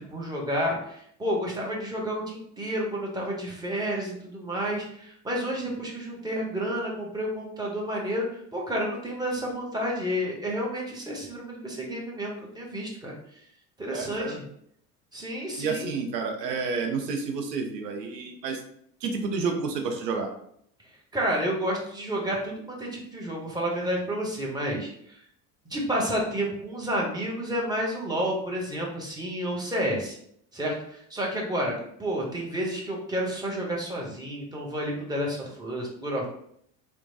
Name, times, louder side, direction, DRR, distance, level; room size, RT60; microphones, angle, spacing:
voice 1, 0.1-8.3 8.5-13.1 13.8-14.4 15.1-16.0 21.1-24.9 25.7-30.2 30.5-31.7 32.0-36.3, equal, 10° right, -2 dB, 0.9 m, -30 dB
voice 2, 13.9-14.4 15.6-18.6 19.0-20.3, right 4 dB, 85° right, 4 dB, 0.6 m, -30 dB
2.9 x 2.2 x 2.6 m, 0.68 s
hypercardioid pair, 70°, 48 cm